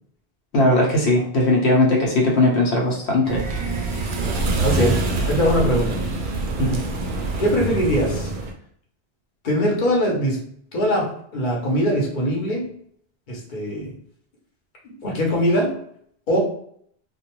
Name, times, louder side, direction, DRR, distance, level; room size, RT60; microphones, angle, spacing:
voice 1, 0.5-3.6 4.8-4.9 6.6-6.8, left 2 dB, 80° left, -2 dB, 0.9 m, -19 dB
sound 1, 3.2-8.5, right 2 dB, 60° right, 0.6 m, -25 dB
voice 2, 4.6-5.0 5.3-6.0 7.4-8.3 9.4-10.4 10.7-11.1 11.3-12.7 13.3-13.9 14.8-15.7 16.3-16.4, equal, 50° left, -2 dB, 0.9 m, -21 dB
2.4 x 2.2 x 2.9 m, 0.64 s
omnidirectional pair, 1.1 m